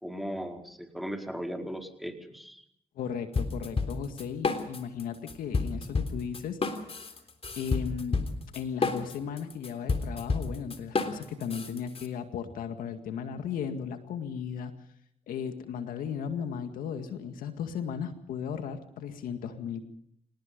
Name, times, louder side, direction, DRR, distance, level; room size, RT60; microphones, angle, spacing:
voice 1, 0.0-2.6, equal, ahead, 3 dB, 4.6 m, -37 dB
voice 2, 3.0-6.6 7.6-8.2 8.5-14.7 15.3-19.9, left 7 dB, 90° left, 8 dB, 2.0 m, -36 dB
sound 1, 3.3-5.0 5.3-12.1, left 4 dB, 45° left, 3.5 m, -30 dB
26.0 x 19.0 x 5.3 m, 0.70 s
supercardioid pair, 55°, 14 cm